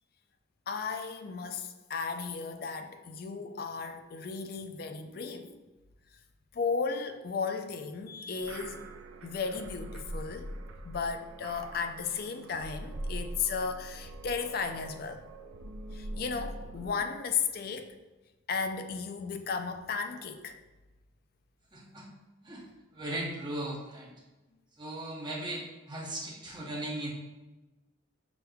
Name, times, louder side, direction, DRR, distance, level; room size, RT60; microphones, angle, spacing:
voice 1, 0.7-5.5 6.5-8.8 9.2-10.5 10.8-15.2 15.9-17.9 18.5-20.5, left 5 dB, 50° left, 7 dB, 0.3 m, -35 dB
sound 1, 8.4-17.1, right 1 dB, 80° right, 0.4 m, -43 dB
voice 2, 21.7-22.1 22.4-22.6 22.9-24.1 24.8-27.1, right 1 dB, 20° right, -2 dB, 0.7 m, -37 dB
6.0 x 3.4 x 2.2 m, 1.1 s
head